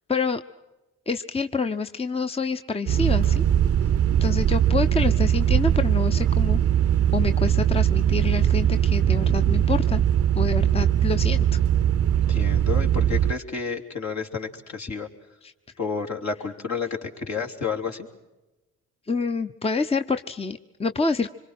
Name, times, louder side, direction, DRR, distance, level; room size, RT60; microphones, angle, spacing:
voice 1, 0.1-0.4 1.1-3.4 4.2-6.6 7.1-10.0 10.3-11.5 15.4-15.5 19.1-21.3, left 4 dB, 20° left, 8 dB, 0.9 m, -27 dB
sound 1, 2.9-13.3, right 10 dB, 45° right, 0.7 m, -21 dB
voice 2, 12.3-15.1 15.8-18.1, left 5 dB, 60° left, 2 dB, 3.1 m, -30 dB
25.5 x 23.0 x 6.5 m, 1.1 s
hypercardioid pair, 50°, 32 cm